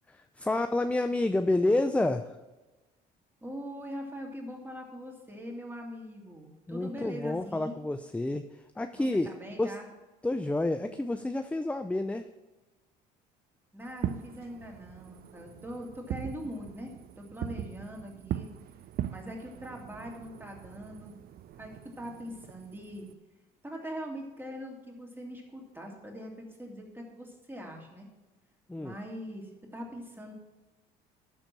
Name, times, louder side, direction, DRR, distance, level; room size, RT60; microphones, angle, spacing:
voice 1, 0.1-2.4 6.7-9.3 9.6-9.7 10.2-12.2 28.7-29.0, left 2 dB, 5° left, 9 dB, 0.5 m, -29 dB
voice 2, 3.4-7.8 8.9-9.9 13.7-18.5 19.1-21.1 21.6-23.1 23.6-28.1 28.8-30.3, equal, 10° right, 0 dB, 2.9 m, -42 dB
Fireworks, 13.9-23.1, right 11 dB, 55° right, 0.6 m, -40 dB
12.5 x 4.4 x 7.5 m, 1.2 s
supercardioid pair, 75°, 19 cm